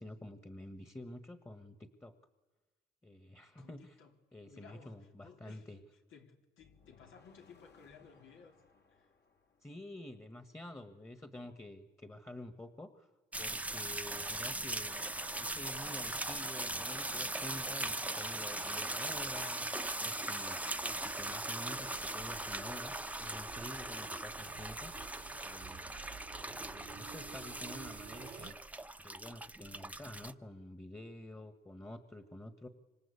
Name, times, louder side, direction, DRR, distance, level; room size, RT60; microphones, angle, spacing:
voice 1, 0.0-2.2 3.0-4.0 4.3-5.8 9.6-13.1 13.4-15.0 15.4-19.7 20.0-20.6 20.9-22.9 23.2-24.9 25.4-26.1 26.4-28.6 29.0-32.7, left 1 dB, 15° left, 1.6 m, -49 dB
voice 2, 3.6-4.1 4.5-5.7 6.1-8.6 8.9-9.1, left 6 dB, 80° left, 3.7 m, -58 dB
sound 1, 6.6-10.7, left 5 dB, 60° left, 3.6 m, -66 dB
sound 2, 13.3-30.3, right 1 dB, 5° right, 1.0 m, -40 dB
sound 3, 21.1-28.6, right 9 dB, 55° right, 1.0 m, -54 dB
26.5 x 25.5 x 8.5 m
cardioid pair, 90°, 20 cm